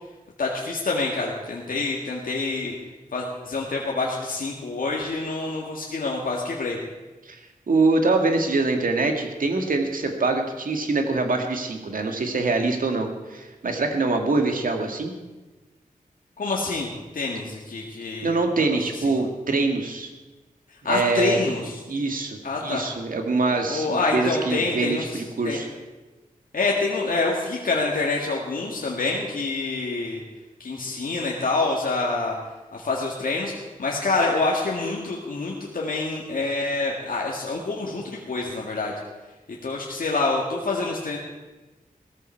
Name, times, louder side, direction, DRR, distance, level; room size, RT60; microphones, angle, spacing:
voice 1, 0.4-2.8 3.1-6.8 16.4-18.4 18.8-19.1 20.7-21.8 22.4-22.8 23.7-25.6 26.5-30.2 30.6-32.4 32.7-38.9 39.6-41.2, left 3 dB, 75° left, -2 dB, 1.9 m, -27 dB
voice 2, 7.7-15.1 18.2-20.1 20.9-21.4 21.9-25.7, right 3 dB, 75° right, 4 dB, 2.0 m, -24 dB
17.0 x 14.0 x 4.6 m, 1.2 s
wide cardioid pair, 70°, 14 cm